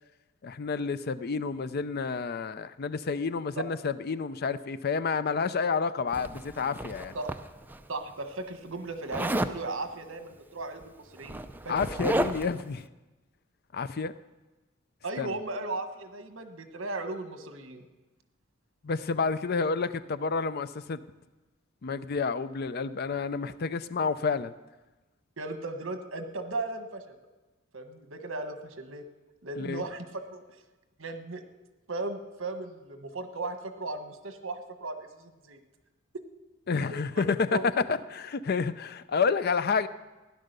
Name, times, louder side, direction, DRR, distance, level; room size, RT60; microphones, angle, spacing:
voice 1, 0.4-7.1 11.7-12.9 13.7-14.1 15.2-15.3 18.8-21.0 21.8-24.5 29.6-29.8 36.7-39.9, left 5 dB, 50° left, 14 dB, 0.5 m, -29 dB
Zipper (clothing), 6.1-7.8 9.1-9.6 10.7-10.8 11.1-12.6, right 1 dB, 10° right, 0.5 m, -32 dB
voice 2, 7.9-11.4 11.6-11.7 15.0-17.8 25.4-27.0 27.7-29.0 29.4-30.4 31.0-31.4 31.9-35.6 36.9-37.2 37.5-37.6, right 2 dB, 70° right, 8 dB, 1.4 m, -36 dB
16.0 x 10.5 x 6.7 m, 1.2 s
head